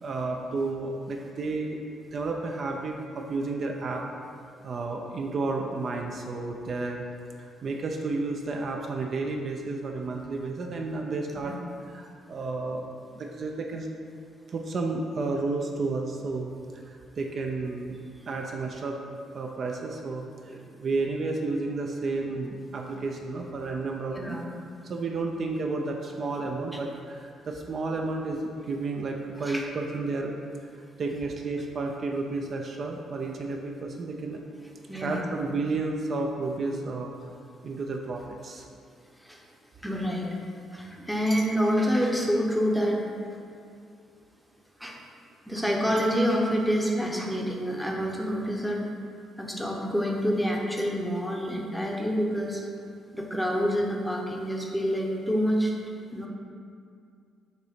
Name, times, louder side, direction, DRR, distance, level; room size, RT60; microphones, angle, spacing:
voice 1, 0.0-1.8 2.1-4.1 4.6-7.0 7.4-11.5 11.9-12.8 13.1-13.9 14.5-16.5 16.8-19.0 19.3-24.4 24.8-30.3 31.0-34.4 35.0-37.1 37.6-38.7, right 3 dB, 45° right, 2 dB, 0.4 m, -31 dB
voice 2, 34.9-35.2 39.2-39.4 39.8-40.4 40.7-43.0 44.8-45.0 45.5-48.8 49.4-52.6 53.1-55.7 56.1-56.3, equal, ahead, -1 dB, 0.7 m, -27 dB
6.6 x 2.9 x 4.9 m, 2.3 s
cardioid pair, 115°, 0 cm